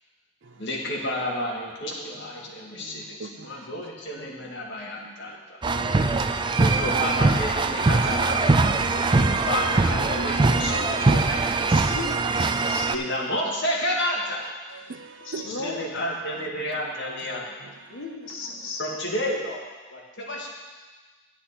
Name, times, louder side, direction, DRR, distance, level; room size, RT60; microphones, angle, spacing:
voice 1, 0.6-5.6 6.6-8.8 9.5-11.8 12.9-14.4 15.4-17.5 18.8-19.6 19.9-20.5, left 1 dB, 60° left, 2.0 m, -31 dB
voice 2, 2.6-3.7 4.2-4.3 5.0-5.1 5.8-6.6 8.7-9.5 10.6-10.9 14.7-15.7, right 4 dB, 65° right, 0.6 m, -43 dB
voice 3, 3.3-3.7 4.6-4.9 5.2-5.3 6.7-7.0 7.3-8.1 8.4-9.4 11.8-12.9 15.2-15.9 17.9-18.8, left 3 dB, 90° left, 1.7 m, -38 dB
sound 1, 5.6-13.0, right 3 dB, 25° right, 0.3 m, -22 dB
9.7 x 9.5 x 4.3 m
head